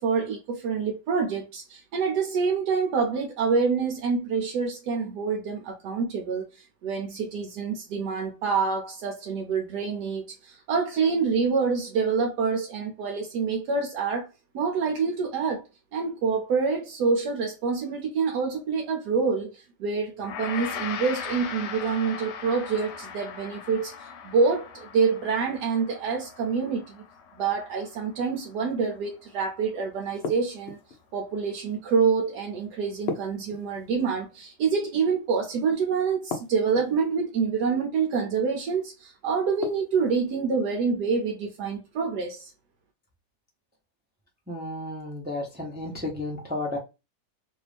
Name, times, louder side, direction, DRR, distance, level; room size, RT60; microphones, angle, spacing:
voice 1, 0.0-14.3 14.5-15.6 15.9-27.0 27.4-30.8 31.1-42.5, right 5 dB, 80° right, 1.2 m, -27 dB
Gong, 20.2-29.6, left 7 dB, 90° left, 1.2 m, -39 dB
sound 1, 30.2-31.0 33.1-34.1 36.3-37.1 39.6-40.3, left 4 dB, 60° left, 0.7 m, -35 dB
voice 2, 44.5-46.8, left 2 dB, 10° right, 0.7 m, -32 dB
3.0 x 2.6 x 3.3 m
omnidirectional pair, 1.7 m